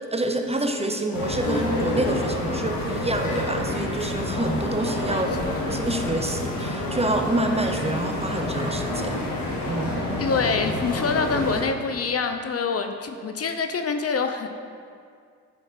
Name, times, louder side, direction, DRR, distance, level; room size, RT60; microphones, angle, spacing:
voice 1, 0.1-5.4 5.6-9.3 9.7-10.1, right 2 dB, 20° right, 4 dB, 0.8 m, -27 dB
sound 1, 1.1-11.6, left 1 dB, 75° left, 1.6 m, -28 dB
voice 2, 5.1-5.7 10.2-14.5, left 4 dB, 45° left, 6 dB, 0.7 m, -26 dB
9.8 x 5.1 x 4.3 m, 2.2 s
supercardioid pair, 55°, 34 cm